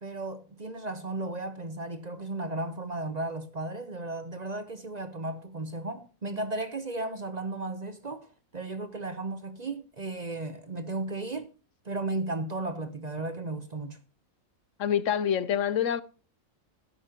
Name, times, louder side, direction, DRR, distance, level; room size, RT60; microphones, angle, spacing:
voice 1, 0.0-11.5 11.8-14.0, right 2 dB, 35° right, 0.8 m, -35 dB
voice 2, 14.8-16.0, left 9 dB, 70° left, 1.1 m, -26 dB
12.0 x 11.0 x 2.9 m
omnidirectional pair, 1.4 m